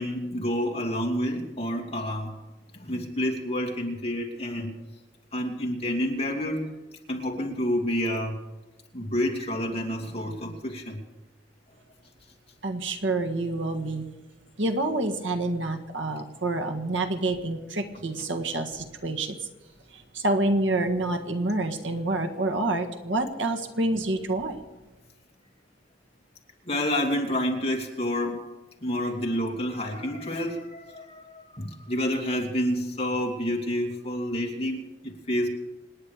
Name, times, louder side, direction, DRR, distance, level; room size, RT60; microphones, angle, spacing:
voice 1, 0.0-2.3 2.7-4.8 5.3-6.7 7.1-8.4 8.9-11.0 26.6-28.5 28.8-35.5, equal, 35° left, 1 dB, 2.6 m, -29 dB
voice 2, 12.6-14.1 14.6-19.4 19.9-24.6, right 2 dB, 90° right, 6 dB, 1.6 m, -27 dB
27.0 x 9.9 x 5.0 m, 1.1 s
head